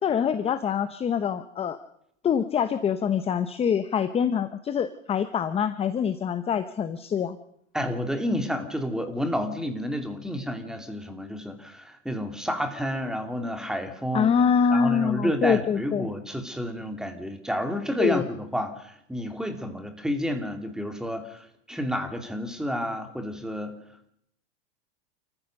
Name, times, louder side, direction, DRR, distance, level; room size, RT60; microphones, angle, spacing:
voice 1, 0.0-1.8 2.2-7.4 14.1-16.1 18.0-18.3, left 7 dB, 15° left, 12 dB, 0.9 m, -25 dB
voice 2, 7.7-14.3 14.7-23.8, equal, ahead, 6 dB, 2.7 m, -30 dB
29.0 x 14.5 x 6.6 m, 0.73 s
hypercardioid pair, 130°, 36 cm